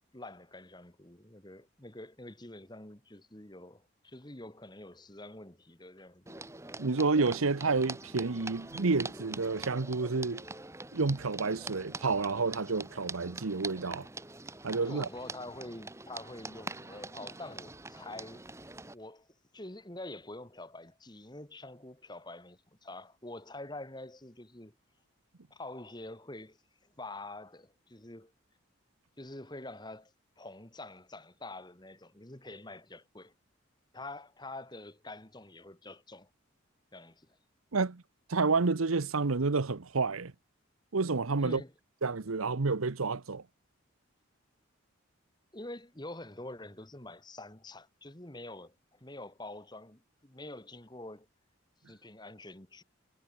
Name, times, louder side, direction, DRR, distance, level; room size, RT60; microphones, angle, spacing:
voice 1, 0.0-6.4 14.9-18.4 18.9-19.3 19.5-24.7 25.5-28.3 29.2-33.3 33.9-36.3 36.9-37.3 41.4-41.7 45.5-51.3 51.9-52.8, left 2 dB, 20° left, 1.9 m, -46 dB
sound 1, 6.3-18.9, right 3 dB, 15° right, 1.2 m, -44 dB
voice 2, 6.8-10.4 10.9-14.1 14.6-15.1 37.7-38.0 38.3-40.3 40.9-41.6 42.0-43.4, right 4 dB, 90° right, 0.9 m, -29 dB
head